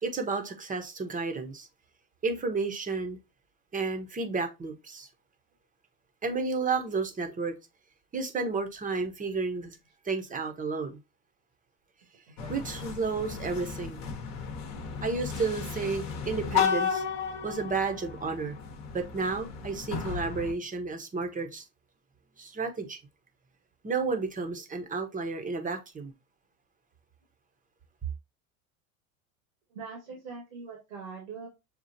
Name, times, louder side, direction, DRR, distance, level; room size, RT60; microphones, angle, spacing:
voice 1, 0.0-1.7 2.2-3.2 3.7-5.1 6.2-7.5 8.1-9.8 10.0-11.0 12.5-14.1 15.0-17.0 17.4-18.6 18.9-21.6 22.4-23.0 23.8-26.1, right 4 dB, 20° right, 0.8 m, -32 dB
sound 1, 12.4-20.5, left 6 dB, 40° left, 1.0 m, -34 dB
voice 2, 29.7-31.5, right 5 dB, 90° right, 1.7 m, -42 dB
6.5 x 2.4 x 2.7 m
hypercardioid pair, 95°, 41 cm